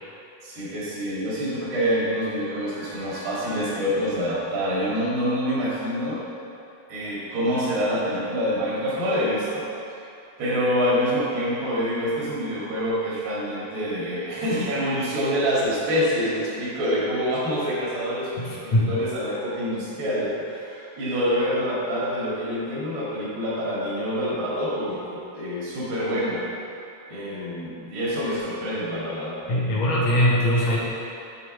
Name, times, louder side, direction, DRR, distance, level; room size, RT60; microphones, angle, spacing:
voice 1, 0.4-6.2 6.9-9.7 10.4-18.3 18.6-26.4 27.1-29.4, equal, 80° right, -7 dB, 4.1 m, -26 dB
voice 2, 18.4-18.9 29.5-30.8, equal, 65° left, -5 dB, 1.8 m, -21 dB
8.6 x 4.0 x 6.4 m, 2.7 s
omnidirectional pair, 4.6 m